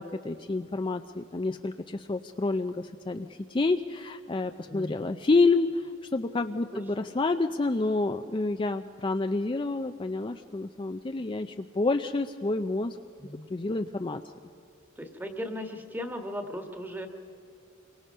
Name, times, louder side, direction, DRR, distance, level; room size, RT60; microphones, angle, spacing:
voice 1, 0.0-13.0 13.5-14.2, left 3 dB, 25° left, 7 dB, 0.4 m, -28 dB
voice 2, 4.7-5.1 6.7-6.8 13.2-13.4 15.0-17.1, equal, 10° right, 5 dB, 1.5 m, -37 dB
27.5 x 23.5 x 5.5 m, 2.8 s
head